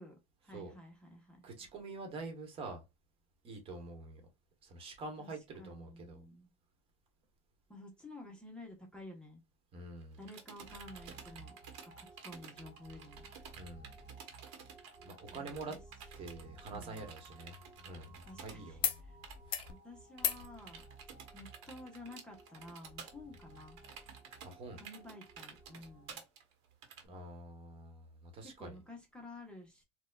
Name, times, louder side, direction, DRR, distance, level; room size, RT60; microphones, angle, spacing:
voice 1, 0.0-1.4 5.2-5.3 5.6-6.5 7.7-9.4 10.2-11.6 11.8-13.3 15.3-15.8 16.7-17.1 18.2-19.2 19.7-20.8 21.3-23.8 24.7-26.2 28.4-29.8, left 1 dB, 5° left, 0.9 m, -52 dB
voice 2, 1.4-2.8 3.4-4.2 4.6-6.2 9.7-10.2 13.5-13.9 15.0-15.8 16.1-17.5 17.8-18.9 24.4-24.8 27.0-28.8, right 3 dB, 40° right, 1.2 m, -46 dB
sound 1, 10.0-18.6 18.9-19.0 19.2-19.7 20.2-27.0, right 7 dB, 75° right, 1.1 m, -52 dB
sound 2, 10.6-26.1, right 2 dB, 10° right, 1.7 m, -57 dB
sound 3, 16.6-18.4 18.8-19.0 19.3-19.7 20.2-20.5 21.8-21.9, left 9 dB, 35° left, 0.6 m, -38 dB
4.1 x 2.3 x 2.3 m
supercardioid pair, 125°, 15 cm